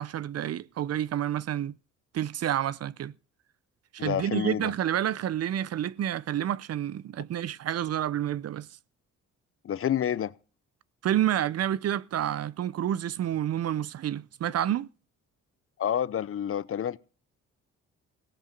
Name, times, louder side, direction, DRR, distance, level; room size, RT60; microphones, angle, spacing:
voice 1, 0.0-1.7 2.1-3.1 3.9-8.7 11.0-14.9, right 11 dB, 55° right, 0.6 m, -29 dB
voice 2, 4.0-4.7 9.6-10.3 15.8-17.0, left 9 dB, 45° left, 0.7 m, -28 dB
18.0 x 8.1 x 5.3 m
cardioid pair, 90°, 30 cm